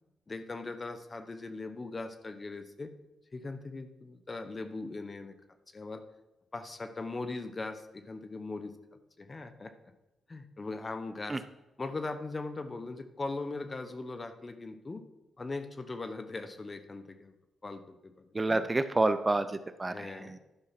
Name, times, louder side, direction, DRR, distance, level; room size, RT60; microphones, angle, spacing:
voice 1, 0.3-2.9 3.3-5.3 5.7-6.0 6.5-8.7 9.2-9.7 10.3-11.4 11.8-15.0 15.4-17.3 17.6-18.7 19.9-20.4, left 3 dB, 35° left, 10 dB, 1.2 m, -40 dB
voice 2, 18.3-20.4, right 2 dB, 25° right, 11 dB, 0.7 m, -29 dB
11.5 x 5.8 x 5.9 m, 1.0 s
cardioid pair, 60°, 0 cm